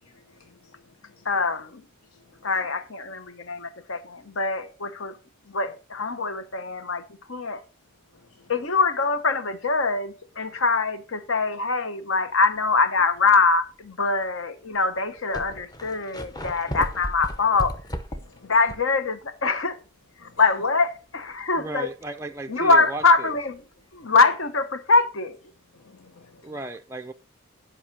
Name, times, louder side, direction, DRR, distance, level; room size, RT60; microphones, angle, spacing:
voice 1, 0.0-1.3 2.0-2.7 3.8-3.9 8.1-8.5 10.5-10.6 18.2-18.5 20.2-20.5 24.0-24.1 25.7-26.6, left 4 dB, 90° left, 0.8 m, -55 dB
voice 2, 1.2-1.8 2.4-5.1 5.5-7.0 7.3-7.6 8.5-17.7 18.4-19.8 20.4-21.9 22.5-23.6 23.9-25.4, left 4 dB, 65° left, 1.0 m, -23 dB
sound 1, 12.8-13.0 13.7-13.8 14.7-14.8 15.0-19.0 19.3-19.4 23.0-23.1, equal, 20° left, 0.8 m, -35 dB
voice 3, 21.6-23.3 26.4-27.1, right 2 dB, 15° right, 0.4 m, -35 dB
10.0 x 5.6 x 4.7 m
head